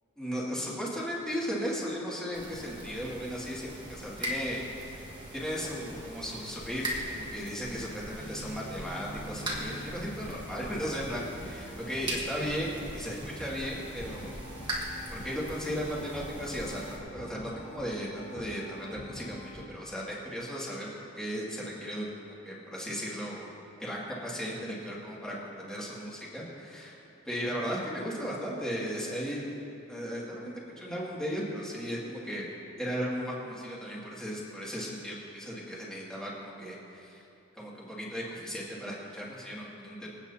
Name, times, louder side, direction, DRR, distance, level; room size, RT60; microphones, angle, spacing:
voice 1, 0.2-5.0 5.3-14.4 15.1-22.1 22.5-23.5 23.8-27.0 27.2-29.5 29.9-32.5 32.8-37.2 37.5-40.1, equal, 5° left, -6 dB, 2.3 m, -36 dB
sound 1, 2.3-17.0, right 1 dB, 20° right, 1.6 m, -40 dB
sound 2, 8.2-19.7, equal, 35° left, 0.9 m, -46 dB
26.0 x 9.1 x 2.8 m, 2.9 s
head